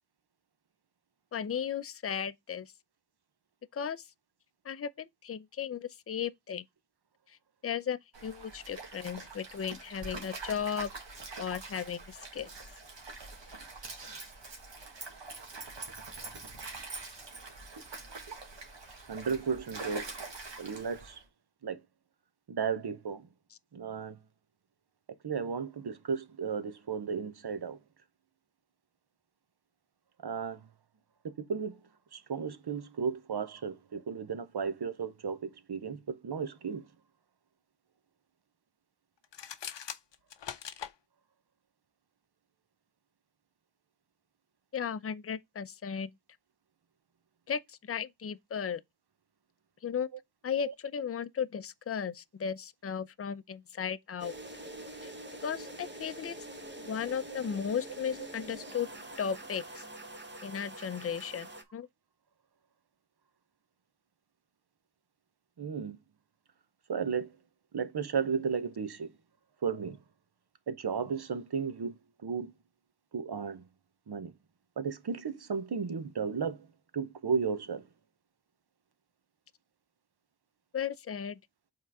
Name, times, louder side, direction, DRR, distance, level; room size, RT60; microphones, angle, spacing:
voice 1, 1.3-2.7 3.7-4.0 4.6-6.6 7.6-10.9 11.4-12.5 44.7-46.1 47.5-48.8 49.8-50.1 50.4-54.3 55.0-55.1 55.4-56.4 56.8-58.9 59.2-59.8 60.4-61.9 80.7-81.4, left 7 dB, 35° left, 0.5 m, -35 dB
Stream, 8.1-21.2, right 3 dB, 85° right, 1.6 m, -44 dB
voice 2, 19.1-20.1 20.6-21.2 21.6-21.8 22.5-23.3 23.7-24.2 25.2-27.8 30.2-30.6 31.2-31.8 32.1-36.8 50.7-50.8 65.6-66.0 66.9-67.3 67.7-69.1 69.6-70.0 70.7-71.9 72.2-72.5 73.1-73.6 74.1-74.3 74.8-76.7 76.9-77.8, right 6 dB, 65° right, 0.9 m, -34 dB
sound 1, 39.2-40.9, left 8 dB, 75° left, 0.6 m, -41 dB
sound 2, 54.2-61.6, right 1 dB, 25° right, 1.0 m, -45 dB
5.4 x 3.9 x 4.7 m
wide cardioid pair, 50°, 43 cm